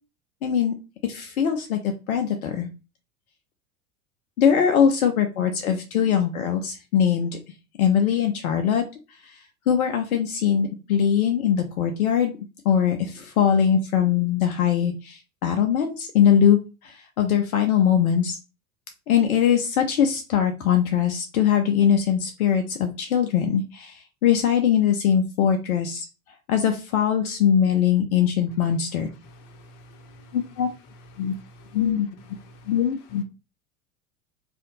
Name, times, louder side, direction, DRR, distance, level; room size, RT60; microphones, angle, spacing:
voice 1, 0.4-0.7 1.0-1.8 2.1-2.7 4.4-7.4 7.8-8.8 9.7-12.3 12.7-16.6 17.2-18.4 19.1-23.9 24.2-26.1 26.5-29.1 30.3-30.7 31.2-31.3 31.7-32.1 32.7-33.2, left 8 dB, 70° left, 0.6 m, -21 dB
voice 2, 29.2-30.4 31.1-31.8 32.4-32.7, equal, 45° left, 0.9 m, -49 dB
2.6 x 2.5 x 3.8 m
figure-of-eight pair, 80°, 45 cm